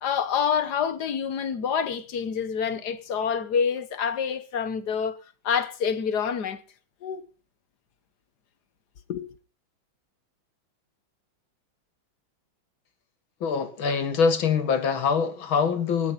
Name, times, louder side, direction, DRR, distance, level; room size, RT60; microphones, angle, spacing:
voice 1, 0.0-5.2 5.4-6.6 7.0-7.2 9.1-9.3, left 7 dB, 55° left, 1.6 m, -27 dB
voice 2, 13.4-16.1, left 6 dB, 75° left, 2.5 m, -24 dB
19.0 x 9.7 x 5.8 m
omnidirectional pair, 2.2 m